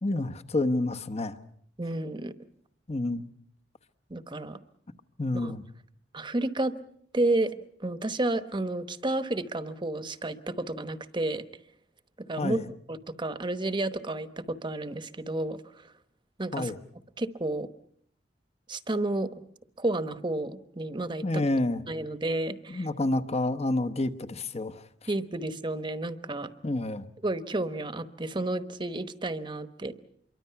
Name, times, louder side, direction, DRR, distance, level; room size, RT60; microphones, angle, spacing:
voice 1, 0.0-1.4 2.9-3.3 5.2-5.6 12.4-12.6 16.5-16.8 21.2-21.8 22.7-25.1 26.6-27.0, left 2 dB, 35° left, 11 dB, 1.0 m, -29 dB
voice 2, 1.8-2.3 4.1-4.6 5.4-5.5 6.1-6.7 7.1-7.5 7.8-11.4 12.3-12.6 12.9-15.6 16.4-16.7 17.2-17.7 18.7-19.3 19.8-21.5 21.9-22.9 25.1-26.5 27.2-30.0, right 2 dB, 25° right, 11 dB, 1.1 m, -31 dB
26.5 x 23.5 x 5.8 m, 0.66 s
head